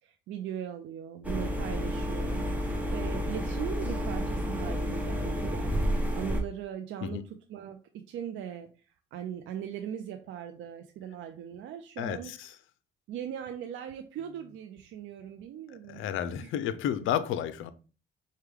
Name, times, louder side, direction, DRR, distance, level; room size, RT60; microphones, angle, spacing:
voice 1, 0.0-5.7 6.1-12.3 13.1-16.0 16.4-16.5, right 9 dB, 80° right, 0.4 m, -39 dB
sound 1, 1.2-6.4, equal, 5° right, 0.8 m, -30 dB
voice 2, 12.0-12.6 15.9-17.7, left 10 dB, 80° left, 0.4 m, -31 dB
4.7 x 2.2 x 3.3 m
cardioid pair, 90°, 20 cm